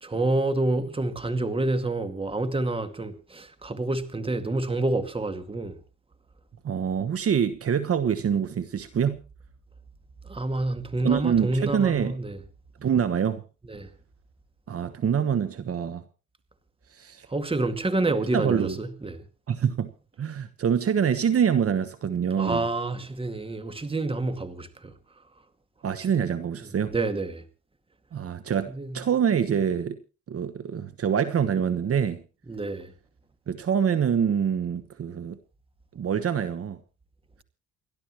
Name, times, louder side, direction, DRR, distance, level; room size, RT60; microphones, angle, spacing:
voice 1, 0.0-5.8 10.3-12.4 13.7-13.9 17.3-19.2 22.4-24.9 26.2-26.3 26.9-27.4 28.7-29.0 32.5-32.9, right 2 dB, 20° right, 2.2 m, -28 dB
voice 2, 6.6-9.2 11.0-12.2 12.8-13.4 14.7-16.0 16.9-17.3 18.3-18.8 19.5-19.9 20.2-22.7 25.8-26.9 28.1-30.0 30.3-32.2 33.5-35.4 35.9-36.8, right 8 dB, 50° right, 1.3 m, -25 dB
29.0 x 12.0 x 3.1 m
cardioid pair, 90°, 30 cm